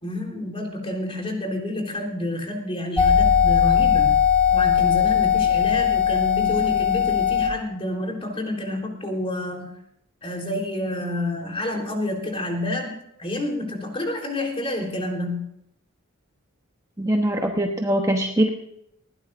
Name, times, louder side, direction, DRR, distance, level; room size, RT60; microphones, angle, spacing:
voice 1, 0.0-4.2 4.5-9.7 10.2-15.4, left 1 dB, 25° left, 1 dB, 3.8 m, -29 dB
sound 1, 3.0-7.5, left 8 dB, 5° left, 3.1 m, -19 dB
voice 2, 17.0-18.5, right 1 dB, 15° right, 2 dB, 1.1 m, -22 dB
20.0 x 16.0 x 2.6 m, 0.75 s
head